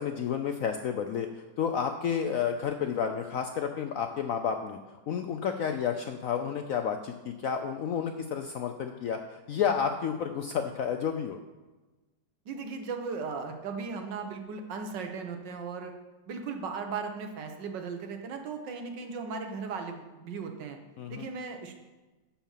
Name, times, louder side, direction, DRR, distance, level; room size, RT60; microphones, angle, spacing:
voice 1, 0.0-4.8 5.1-11.4 21.0-21.3, left 7 dB, 70° left, 6 dB, 0.8 m, -31 dB
voice 2, 12.4-15.9 16.3-20.8 21.1-21.7, right 5 dB, 75° right, 5 dB, 1.7 m, -37 dB
11.5 x 4.3 x 7.3 m, 1.2 s
omnidirectional pair, 2.0 m